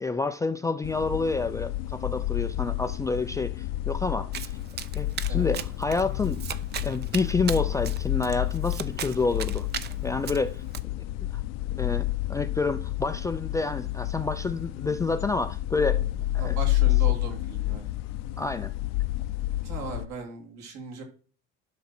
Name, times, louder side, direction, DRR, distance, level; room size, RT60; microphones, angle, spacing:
voice 1, 0.0-4.6 4.9-6.4 6.8-9.7 10.0-10.6 11.7-16.0 16.3-16.6 18.4-18.7, left 3 dB, 10° left, 0.3 m, -28 dB
sound 1, 0.8-20.1, left 15 dB, 65° left, 0.6 m, -30 dB
Domestic sounds home sounds, 4.3-10.8, right 9 dB, 35° right, 0.6 m, -38 dB
voice 2, 16.4-17.9 19.6-21.0, right 4 dB, 65° right, 3.0 m, -38 dB
11.5 x 5.9 x 4.3 m
cardioid pair, 160°, 29 cm